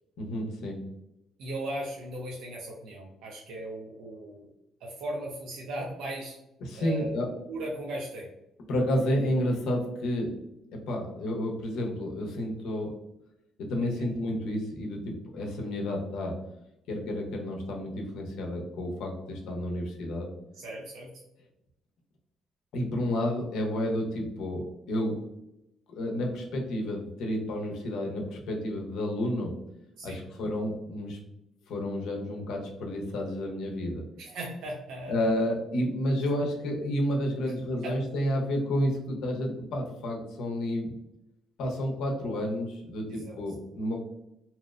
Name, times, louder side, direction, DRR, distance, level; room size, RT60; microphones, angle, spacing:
voice 1, 0.2-0.8 6.6-7.3 8.7-10.4 10.7-13.0 13.6-16.4 16.9-20.3 22.7-25.2 25.9-29.5 30.0-31.2 31.7-34.0 35.1-40.9 41.6-44.0, left 1 dB, 75° left, 1 dB, 0.6 m, -30 dB
voice 2, 1.4-4.5 4.8-6.4 6.7-7.1 7.5-8.3 13.8-14.1 20.5-21.1 30.0-30.3 34.2-35.2 37.8-37.9 43.1-43.4, right 1 dB, 80° right, -2 dB, 0.5 m, -37 dB
2.8 x 2.0 x 2.3 m, 0.84 s
cardioid pair, 150°, 0 cm